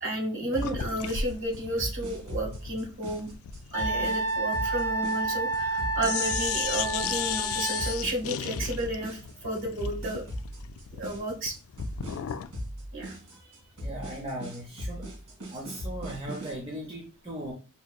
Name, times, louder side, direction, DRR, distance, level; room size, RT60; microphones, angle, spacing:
voice 1, 0.0-3.3 3.7-10.2 10.9-11.5 12.9-13.2, right 1 dB, 55° right, 0 dB, 1.9 m, -32 dB
sound 1, 0.5-16.5, equal, 85° right, 1.9 m, -38 dB
sound 2, 0.6-5.7 6.0-12.6, left 8 dB, 75° left, 0.3 m, -35 dB
Wind instrument woodwind instrument, 3.7-8.0, right 3 dB, 15° left, 0.9 m, -30 dB
voice 2, 13.8-15.0 15.5-17.5, right 1 dB, 25° right, -1 dB, 0.6 m, -37 dB
5.4 x 2.8 x 2.3 m, 0.34 s
head